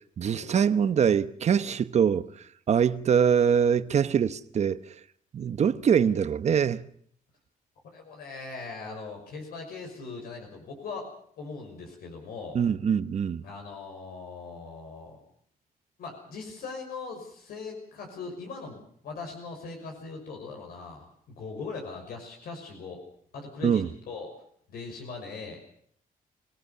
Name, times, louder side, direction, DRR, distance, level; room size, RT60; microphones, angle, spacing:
voice 1, 0.2-2.3 2.7-4.8 5.3-6.8 12.5-13.4 23.6-23.9, right 7 dB, 50° right, 1.0 m, -23 dB
voice 2, 7.9-11.1 11.4-12.6 13.4-15.2 16.0-23.0 23.3-24.3 24.7-25.6, left 4 dB, 85° left, 6.0 m, -40 dB
26.0 x 17.5 x 6.9 m
cardioid pair, 125°, 15 cm